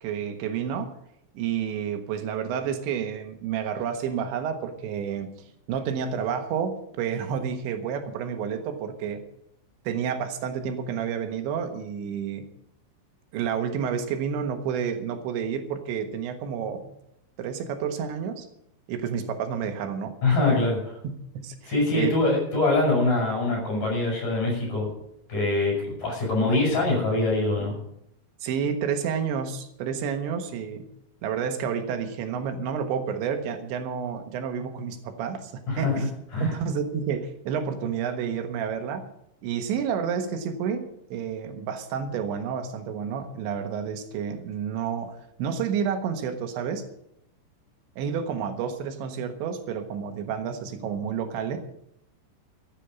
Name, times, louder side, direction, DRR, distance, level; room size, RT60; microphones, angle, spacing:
voice 1, 0.0-0.9 1.4-5.3 5.7-9.2 9.9-12.5 13.3-17.0 17.4-18.5 18.9-20.2 21.0-22.1 28.4-30.9 31.2-36.1 36.4-39.0 39.4-46.8 48.0-51.6, right 7 dB, 85° right, 6 dB, 3.7 m, -30 dB
voice 2, 20.2-20.9 21.7-24.9 25.3-27.7 35.7-35.9 36.3-36.5, left 2 dB, 50° left, -2 dB, 8.8 m, -24 dB
13.5 x 9.5 x 6.9 m, 0.76 s
omnidirectional pair, 5.1 m